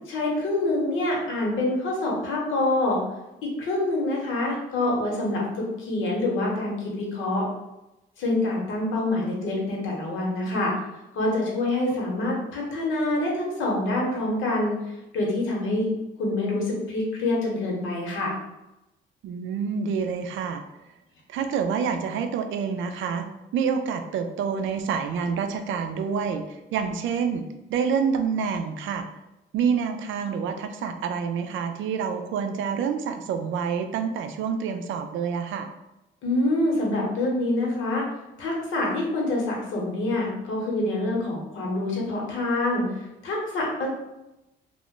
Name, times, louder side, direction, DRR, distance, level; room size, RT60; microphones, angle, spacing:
voice 1, 0.1-3.0 3.4-7.5 8.2-10.7 11.1-14.8 15.1-15.9 16.2-18.3 36.2-38.0 38.4-43.9, left 2 dB, 80° left, -2 dB, 0.9 m, -26 dB
voice 2, 19.2-20.6 21.3-23.3 23.5-29.1 29.5-35.7, right 6 dB, 75° right, 7 dB, 0.4 m, -27 dB
2.4 x 2.1 x 3.6 m, 0.95 s
cardioid pair, 90°, 20 cm